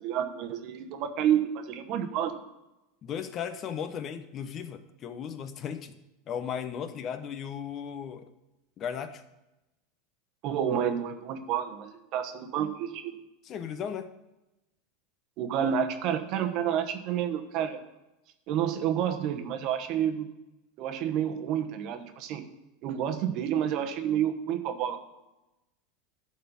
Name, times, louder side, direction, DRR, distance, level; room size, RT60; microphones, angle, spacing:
voice 1, 0.0-2.4 10.4-13.2 15.4-17.8 18.5-20.3 20.8-22.4 22.8-25.0, right 9 dB, 50° right, 8 dB, 1.1 m, -29 dB
voice 2, 3.0-6.0 6.3-8.2 8.8-9.2 13.4-14.1, left 8 dB, 35° left, 10 dB, 0.9 m, -36 dB
12.0 x 4.3 x 7.1 m, 0.97 s
supercardioid pair, 140°, 0 cm